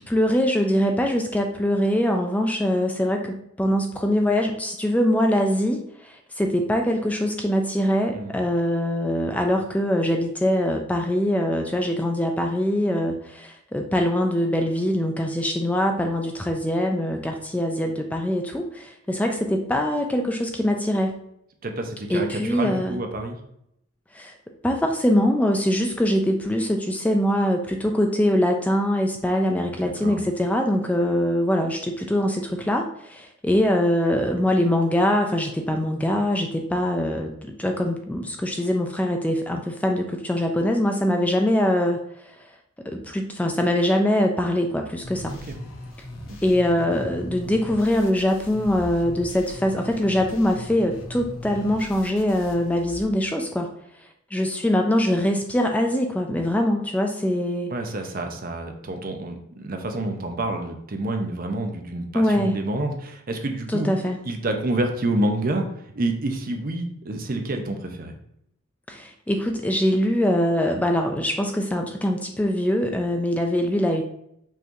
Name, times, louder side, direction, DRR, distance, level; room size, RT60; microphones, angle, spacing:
voice 1, 0.0-21.2 22.1-23.0 24.1-24.4 24.6-42.3 42.9-45.4 46.4-53.7 54.3-57.7 62.1-62.6 63.7-64.2 68.9-74.0, left 1 dB, 5° left, 3 dB, 0.3 m, -23 dB
voice 2, 21.6-23.4 29.8-30.2 45.3-45.5 46.3-46.4 57.7-63.9 64.3-65.7 65.9-68.1, right 1 dB, 45° right, 4 dB, 0.6 m, -28 dB
sound 1, 45.0-53.0, left 1 dB, 85° left, 0.8 m, -39 dB
5.5 x 3.1 x 2.6 m, 0.76 s
head